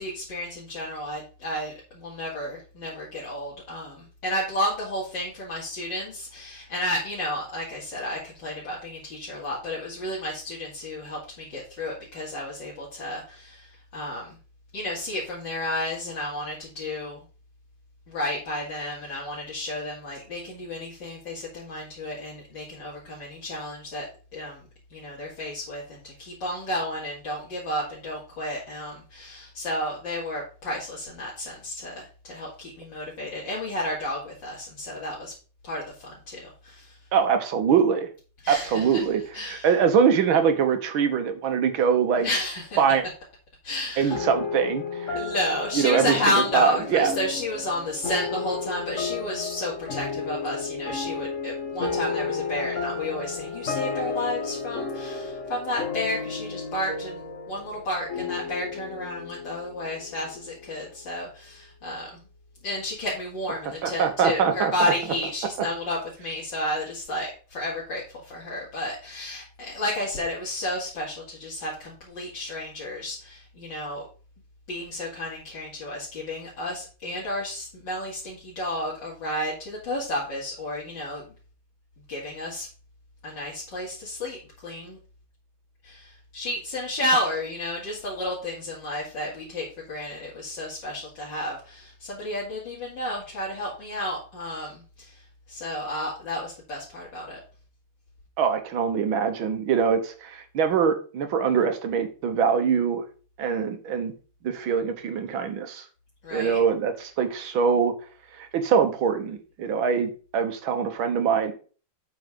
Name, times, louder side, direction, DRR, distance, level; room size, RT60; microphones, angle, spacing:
voice 1, 0.0-14.4 14.7-17.2 18.1-24.1 24.3-24.6 24.9-35.3 35.6-37.0 38.4-39.1 39.3-39.7 42.2-42.8 43.6-44.2 45.1-62.2 62.6-74.1 74.7-81.2 82.1-82.7 83.2-84.4 84.6-85.0 85.8-95.2 95.5-97.4 106.2-106.6, left 1 dB, 60° left, -6 dB, 3.0 m, -32 dB
voice 2, 37.1-38.1 38.5-42.3 42.8-43.0 44.0-45.2 45.8-46.2 46.5-47.1 63.8-64.9 98.4-103.1 103.4-104.1 104.4-105.9 106.3-107.9 108.4-111.5, right 7 dB, 75° right, 8 dB, 1.9 m, -23 dB
sound 1, 44.1-60.9, left 4 dB, 40° left, 1.6 m, -33 dB
8.2 x 4.9 x 5.1 m, 0.38 s
omnidirectional pair, 2.2 m